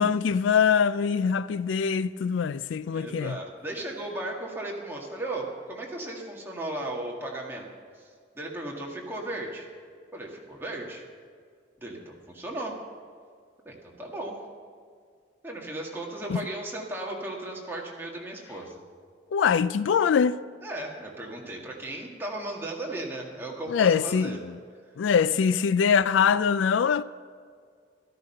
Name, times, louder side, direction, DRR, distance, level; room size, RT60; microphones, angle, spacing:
voice 1, 0.0-3.4 16.3-16.4 19.3-20.4 23.7-24.5 25.0-27.0, left 6 dB, 80° left, 0.3 m, -23 dB
voice 2, 2.9-7.7 7.9-8.1 8.3-9.7 10.1-11.1 11.8-12.8 13.7-14.5 15.4-18.8 20.6-24.4, right 1 dB, 10° right, 1.9 m, -36 dB
13.5 x 13.0 x 5.6 m
head